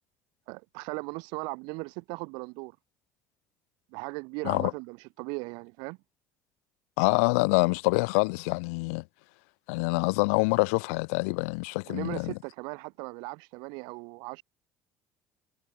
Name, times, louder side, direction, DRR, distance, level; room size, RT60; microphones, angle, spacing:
voice 1, 0.5-2.8 3.9-6.0 11.8-14.4, right 31 dB, 65° right, 1.3 m, -38 dB
voice 2, 7.0-9.0 9.7-12.3, left 31 dB, 70° left, 0.4 m, -26 dB
figure-of-eight pair, 60°, 8 cm